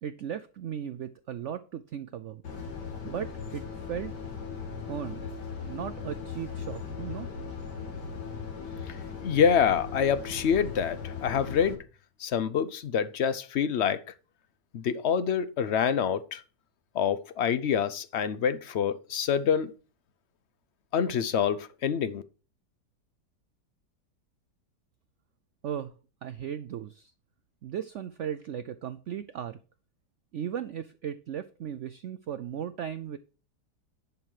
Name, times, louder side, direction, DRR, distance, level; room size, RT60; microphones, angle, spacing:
voice 1, 0.0-2.4 3.0-4.1 4.9-5.2 5.7-7.3 25.6-25.9 26.2-27.1 27.6-29.6 30.3-33.2, right 9 dB, 75° right, 0.6 m, -36 dB
sound 1, 2.4-11.7, left 5 dB, 80° left, 2.7 m, -38 dB
voice 2, 9.2-11.8 12.2-14.0 14.7-16.4 16.9-19.7 20.9-22.2, left 7 dB, 60° left, 0.7 m, -26 dB
11.0 x 6.1 x 4.8 m
omnidirectional pair, 1.8 m